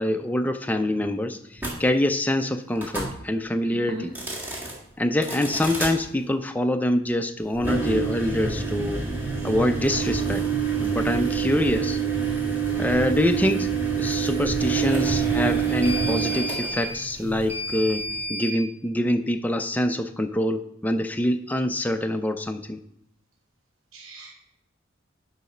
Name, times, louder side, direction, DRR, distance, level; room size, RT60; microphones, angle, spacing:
voice 1, 0.0-4.1 5.0-9.0 9.4-10.4 10.8-12.0 12.8-13.7 14.0-22.8, left 1 dB, 10° left, 6 dB, 0.4 m, -25 dB
sound 1, 1.6-1.7 2.8-3.1 4.0-4.7 5.2-5.9 7.5-18.6, right 5 dB, 10° right, 1.8 m, -27 dB
voice 2, 3.6-4.1 23.9-24.3, right 2 dB, 85° right, 1 dB, 0.9 m, -38 dB
10.5 x 4.1 x 5.5 m, 0.76 s
head